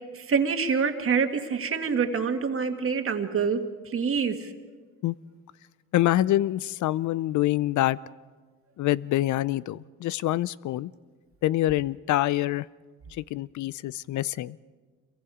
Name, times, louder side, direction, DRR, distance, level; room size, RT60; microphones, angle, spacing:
voice 1, 0.1-3.6 3.9-4.5, right 6 dB, 45° right, 5 dB, 2.0 m, -26 dB
voice 2, 5.9-8.0 8.8-10.9 11.4-12.7 13.2-14.6, left 14 dB, 75° left, 19 dB, 0.5 m, -26 dB
27.5 x 22.5 x 4.9 m, 1.5 s
cardioid pair, 90°, 30 cm